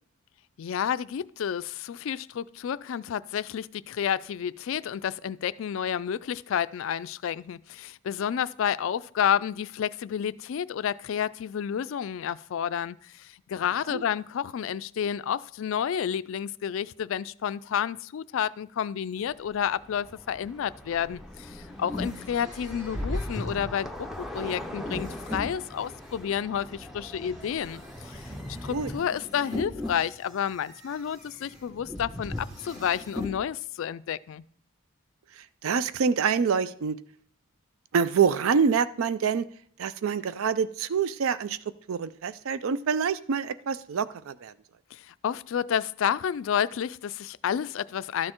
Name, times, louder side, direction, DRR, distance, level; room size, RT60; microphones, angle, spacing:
voice 1, 0.6-34.4 44.9-48.3, left 8 dB, 60° left, 0.3 m, -30 dB
sound 1, 19.2-29.0, left 1 dB, ahead, 0.5 m, -42 dB
sound 2, 21.2-26.1 26.7-33.4, left 1 dB, 15° right, 3.4 m, -38 dB
voice 2, 35.6-37.0 37.9-39.5 39.8-41.6 41.9-44.5, right 6 dB, 70° right, 0.4 m, -26 dB
13.0 x 6.5 x 4.4 m
head